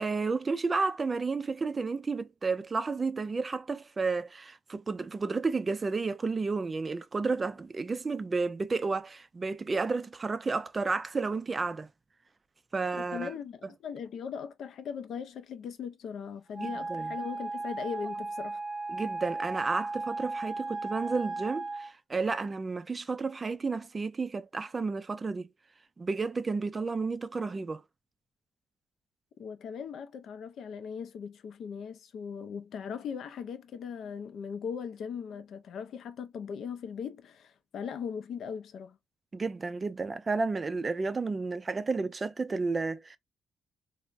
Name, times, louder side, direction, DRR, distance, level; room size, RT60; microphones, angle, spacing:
voice 1, 0.0-11.9 12.7-13.3 16.6-17.1 18.9-25.5 26.0-27.8 39.3-43.2, right 4 dB, 30° right, 0.3 m, -32 dB
voice 2, 12.9-18.6 29.4-39.0, left 7 dB, 70° left, 0.4 m, -39 dB
Wind instrument woodwind instrument, 16.5-21.9, right 3 dB, 5° right, 0.9 m, -36 dB
3.3 x 2.0 x 2.4 m
cardioid pair, 90°, 0 cm